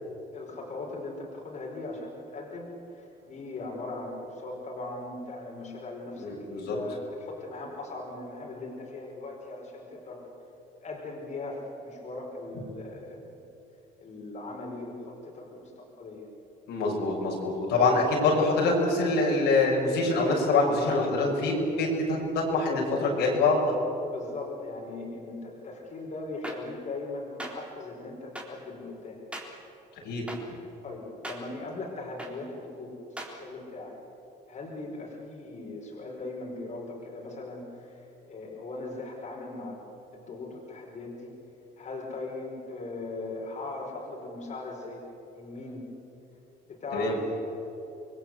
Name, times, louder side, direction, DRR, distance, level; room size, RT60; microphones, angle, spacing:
voice 1, 0.3-10.3 10.8-13.4 14.0-16.2 24.1-29.2 30.8-32.9 33.2-34.0 34.5-38.0 38.3-39.8 40.1-41.3 41.8-45.0 45.3-45.8 46.7-47.5, left 2 dB, 45° left, -2 dB, 5.2 m, -39 dB
voice 2, 6.2-6.8 16.7-23.6 30.0-30.2 46.9-47.2, left 3 dB, 80° left, -1 dB, 6.9 m, -25 dB
sound 1, 26.4-26.5 27.4-27.5 28.3-28.4 29.3-29.4 30.3-30.4 31.2-31.4 32.2-32.3 33.2-33.3, right 1 dB, 5° right, 3.8 m, -37 dB
26.5 x 21.0 x 8.1 m, 2.9 s
cardioid pair, 110°, 17 cm